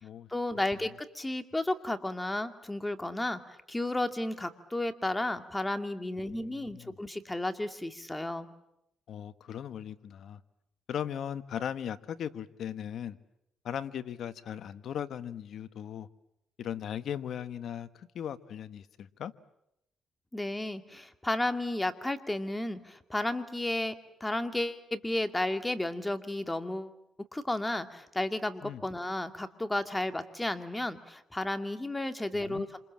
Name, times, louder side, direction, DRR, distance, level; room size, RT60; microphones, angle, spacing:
voice 1, 0.3-8.5 20.3-23.9 24.2-26.9 27.3-32.8, left 1 dB, 10° left, 8 dB, 2.3 m, -33 dB
voice 2, 6.2-6.9 9.1-10.4 10.9-13.2 13.6-16.1 16.6-19.3 28.6-28.8 32.3-32.7, left 9 dB, 65° left, 12 dB, 1.4 m, -38 dB
28.0 x 27.5 x 7.5 m, 0.82 s
cardioid pair, 90°, 0 cm